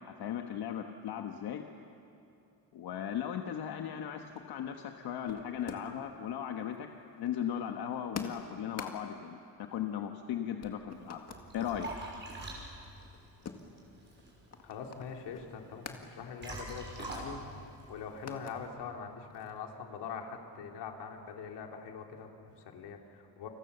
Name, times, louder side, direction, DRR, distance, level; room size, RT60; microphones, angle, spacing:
voice 1, 0.1-1.6 2.7-6.9 7.2-11.2 11.5-11.9, left 9 dB, 65° left, 4 dB, 1.4 m, -37 dB
sound 1, 4.2-6.1 6.4-10.3 10.6-11.5 11.9-16.1 16.4-16.6 16.8-18.6 19.0-19.8, left 6 dB, 40° left, 2.0 m, -48 dB
Liquid, 10.9-18.7, right 2 dB, 30° right, 5.8 m, -46 dB
voice 2, 14.6-17.4 17.9-23.5, left 6 dB, 90° left, 2 dB, 3.2 m, -43 dB
30.0 x 26.0 x 6.9 m, 2.7 s
cardioid pair, 160°, 40 cm